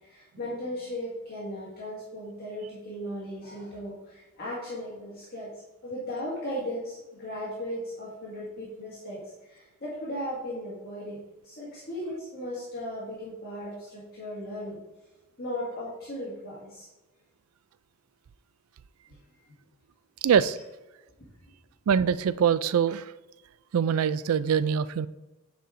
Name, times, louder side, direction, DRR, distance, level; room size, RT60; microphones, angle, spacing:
voice 1, 0.0-5.5 5.8-11.2 11.4-14.8 15.4-16.9 19.1-19.2, equal, 50° left, -7 dB, 1.9 m, -37 dB
voice 2, 20.2-20.6 21.9-23.1 23.7-25.1, right 7 dB, 90° right, 15 dB, 0.4 m, -23 dB
9.3 x 4.8 x 3.8 m, 1.1 s
head